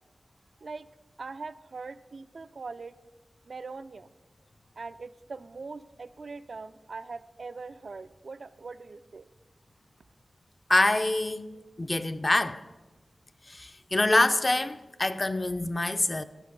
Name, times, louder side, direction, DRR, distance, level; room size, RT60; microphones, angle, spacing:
voice 1, 1.2-2.9 3.5-4.1 4.8-9.3, right 4 dB, 65° right, 0.3 m, -41 dB
voice 2, 10.7-11.5 11.8-12.6 13.5-16.2, left 2 dB, 35° left, 0.4 m, -25 dB
11.5 x 5.7 x 5.3 m
wide cardioid pair, 70°, 0 cm